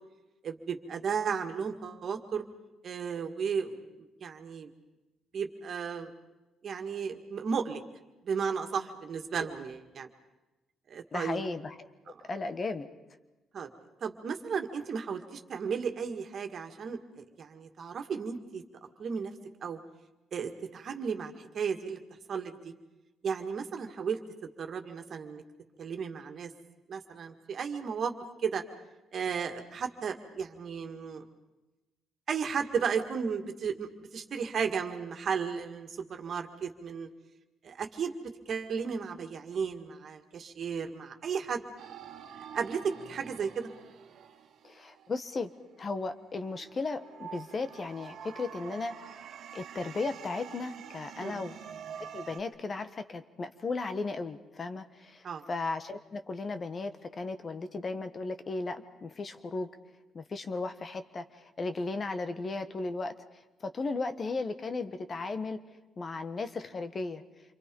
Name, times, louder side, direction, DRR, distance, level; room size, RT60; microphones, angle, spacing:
voice 1, 0.4-2.4 2.8-4.7 5.3-6.1 6.6-7.8 8.2-10.1 10.9-11.4 12.1-12.2 13.5-13.7 14.0-18.6 19.0-19.3 19.6-19.8 20.3-22.0 22.3-22.7 23.2-25.4 25.8-26.5 26.9-28.1 28.4-28.6 29.1-31.2 32.3-37.1 37.6-38.1 38.5-41.6 42.5-43.7 51.2-51.5 55.2-55.4, right 6 dB, 55° right, 5 dB, 2.0 m, -34 dB
voice 2, 11.1-11.7 12.3-12.9 44.6-45.5 45.8-48.9 49.5-51.6 52.1-59.7 60.1-63.1 63.6-65.6 66.0-67.2, left 3 dB, 40° left, 10 dB, 1.4 m, -35 dB
sound 1, 41.8-45.8 46.3-52.4, right 8 dB, 70° right, 1.6 m, -47 dB
28.0 x 23.5 x 5.4 m, 1.1 s
cardioid pair, 90°, 0 cm